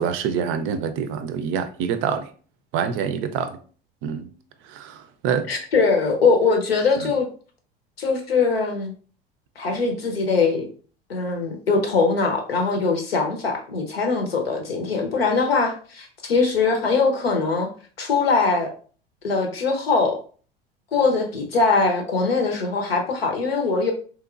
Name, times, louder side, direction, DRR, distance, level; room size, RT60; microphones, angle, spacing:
voice 1, 0.0-2.3 2.7-3.6 4.0-4.3 4.7-5.5, right 7 dB, 45° right, 0.5 m, -26 dB
voice 2, 5.5-7.3 8.0-8.9 9.6-10.7 11.1-17.7 18.0-18.7 19.2-20.2 20.9-23.9, left 4 dB, 85° left, 0.8 m, -21 dB
3.3 x 2.9 x 2.4 m
figure-of-eight pair, 70°, 30 cm